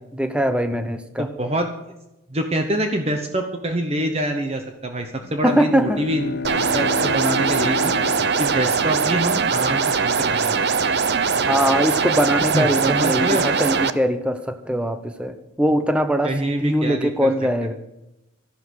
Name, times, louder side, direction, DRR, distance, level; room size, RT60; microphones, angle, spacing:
voice 1, 0.1-1.3 5.4-6.0 11.5-17.7, equal, 5° right, 9 dB, 0.8 m, -22 dB
voice 2, 1.2-1.7 2.3-7.9 8.4-10.5 12.5-13.5 16.2-17.3, right 1 dB, 30° right, 5 dB, 0.9 m, -25 dB
Bowed string instrument, 5.1-9.7, left 4 dB, 55° left, 0.7 m, -31 dB
sound 1, 6.4-13.9, right 5 dB, 55° right, 0.6 m, -21 dB
13.0 x 11.5 x 6.5 m, 0.92 s
head